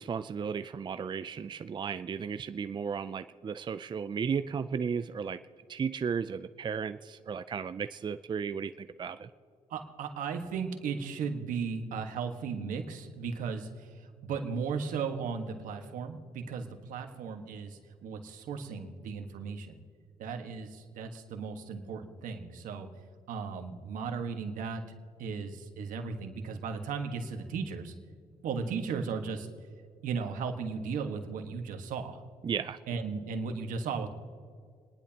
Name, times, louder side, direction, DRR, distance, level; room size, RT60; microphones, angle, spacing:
voice 1, 0.0-5.4 5.7-9.3 32.4-32.8, right 6 dB, 35° right, 11 dB, 0.4 m, -34 dB
voice 2, 9.7-19.7 20.2-22.9 23.3-24.8 25.2-27.9 28.4-29.5 30.0-32.2 32.9-34.1, right 5 dB, 80° right, 5 dB, 1.5 m, -36 dB
30.0 x 10.5 x 2.9 m, 2.2 s
cardioid pair, 75°, 13 cm